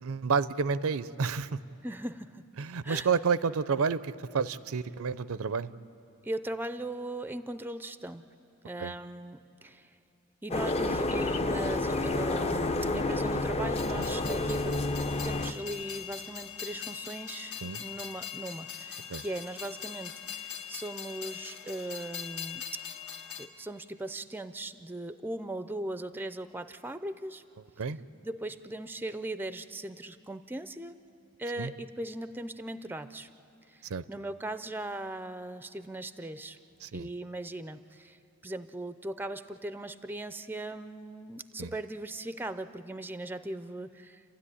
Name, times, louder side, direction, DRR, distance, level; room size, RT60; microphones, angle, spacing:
voice 1, 0.0-1.6 2.6-5.7 8.8-8.9 14.0-14.1 17.6-17.8 19.1-19.2 27.8-28.0 31.6-31.7 33.8-34.0 36.8-37.1 41.6-41.7, right 5 dB, 65° right, 15 dB, 0.5 m, -30 dB
voice 2, 1.8-2.5 2.8-3.1 6.2-8.2 8.6-9.9 10.4-22.8 23.4-27.4 27.8-27.9 28.2-31.0 31.4-33.3 33.7-36.6 36.9-38.2 38.4-44.2, right 1 dB, 10° right, 12 dB, 0.5 m, -39 dB
sound 1, 10.5-15.5, left 2 dB, 30° left, 0.7 m, -29 dB
Train, 13.7-23.5, left 8 dB, 70° left, 1.5 m, -41 dB
29.5 x 13.0 x 9.9 m, 2.7 s
head